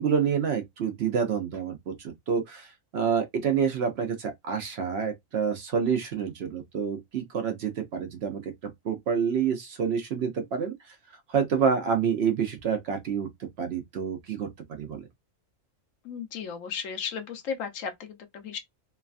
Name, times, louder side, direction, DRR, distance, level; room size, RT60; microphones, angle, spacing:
voice 1, 0.0-10.7 11.3-15.0, right 6 dB, 60° right, 0.7 m, -28 dB
voice 2, 16.0-18.6, left 6 dB, 75° left, 1.0 m, -35 dB
3.2 x 2.2 x 2.4 m
omnidirectional pair, 1.4 m